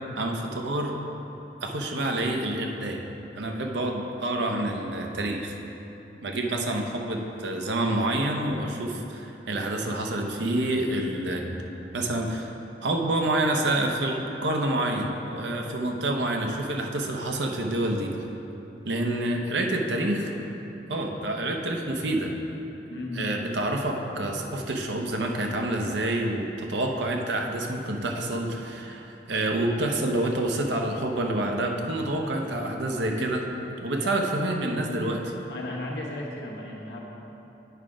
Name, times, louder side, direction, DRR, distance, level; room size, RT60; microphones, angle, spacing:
voice 1, 0.2-1.0 1.6-3.0 3.3-5.5 6.2-11.6 11.9-12.5 12.8-18.1 18.9-20.5 20.9-22.3 23.1-33.5 33.8-35.3, right 1 dB, 90° right, 2 dB, 0.8 m, -28 dB
voice 2, 19.4-20.1 22.9-23.5 33.9-34.2 35.5-37.0, left 2 dB, 70° left, -3 dB, 1.2 m, -36 dB
8.1 x 4.9 x 5.2 m, 3.0 s
head